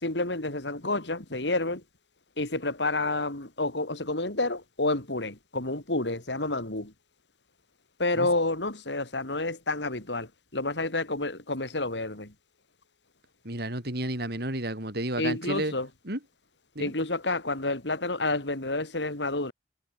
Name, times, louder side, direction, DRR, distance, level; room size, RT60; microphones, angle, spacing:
voice 1, 0.0-1.8 2.4-6.9 8.0-12.3 15.2-15.9 16.8-19.5, left 2 dB, 75° left, 3.8 m, -29 dB
voice 2, 13.4-15.7 16.1-16.2 16.7-16.9, right 1 dB, 60° right, 6.5 m, -31 dB
head